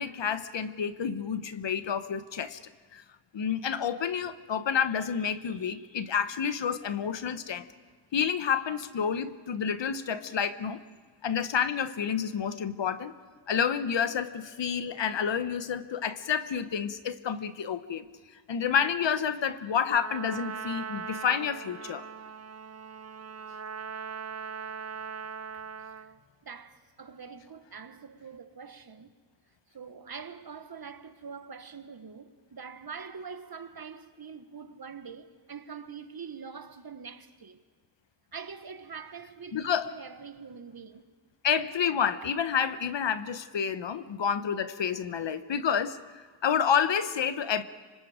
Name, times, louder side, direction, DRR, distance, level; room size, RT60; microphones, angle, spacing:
voice 1, 0.0-2.6 2.9-3.0 3.3-7.6 8.1-10.8 11.2-13.1 13.5-18.0 18.5-22.1 39.5-39.9 41.4-47.6, left 7 dB, 75° left, 1.1 m, -29 dB
Trumpet, 19.9-26.2, right 6 dB, 35° right, 0.7 m, -40 dB
voice 2, 25.5-26.0 26.4-29.1 29.7-37.6 38.3-41.1 42.2-42.3, right 6 dB, 55° right, 1.4 m, -44 dB
26.0 x 25.0 x 5.0 m
cardioid pair, 40°, 44 cm